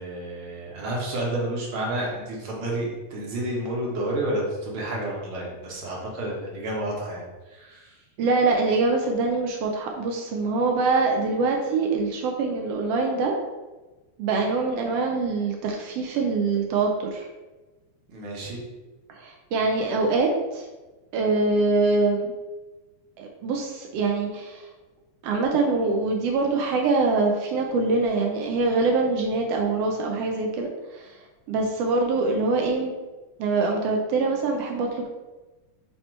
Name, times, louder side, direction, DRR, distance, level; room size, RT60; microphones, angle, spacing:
voice 1, 0.0-8.0 18.1-18.6, right 1 dB, 55° right, -3 dB, 1.8 m, -30 dB
voice 2, 8.2-13.3 14.2-17.3 19.1-20.6 21.1-22.3 23.2-24.7 25.2-31.2 31.5-32.9 33.4-35.1, right 3 dB, 85° right, 1 dB, 1.3 m, -24 dB
7.6 x 2.9 x 4.5 m, 1.2 s
omnidirectional pair, 3.6 m